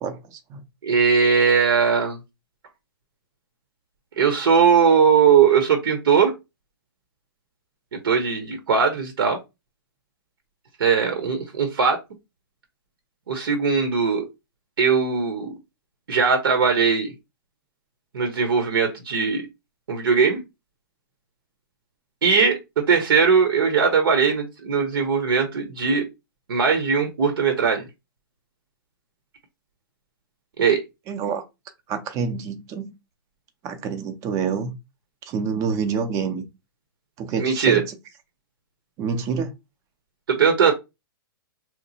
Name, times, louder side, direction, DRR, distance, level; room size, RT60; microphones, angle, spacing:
voice 1, 0.0-0.6 31.1-31.4 31.9-32.9 33.6-34.7 35.3-36.4 37.2-38.0 39.0-39.5, right 6 dB, 25° right, 0.6 m, -27 dB
voice 2, 0.8-2.2 4.2-6.3 8.0-9.4 10.8-12.0 13.3-14.2 14.8-15.5 16.1-17.1 18.1-19.4 19.9-20.4 22.2-26.0 26.5-27.8 30.6-30.8 37.4-37.8 40.3-40.7, right 6 dB, 70° right, 0.9 m, -19 dB
2.9 x 2.1 x 4.1 m
hypercardioid pair, 145°, 12 cm